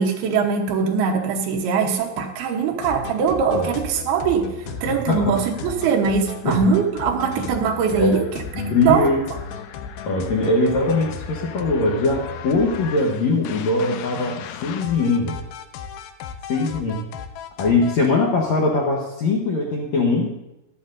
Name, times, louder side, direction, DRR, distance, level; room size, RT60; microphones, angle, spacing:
voice 1, 0.0-4.5 4.8-8.3 8.8-9.1, right 6 dB, 75° right, 2 dB, 3.0 m, -21 dB
sound 1, 2.8-18.1, left 6 dB, 85° left, 2.4 m, -35 dB
voice 2, 5.1-5.4 6.4-6.6 7.9-8.2 8.6-9.3 10.1-15.4 16.5-17.0 17.6-20.4, left 3 dB, 70° left, -2 dB, 1.8 m, -21 dB
15.5 x 12.0 x 2.6 m, 0.93 s
omnidirectional pair, 4.6 m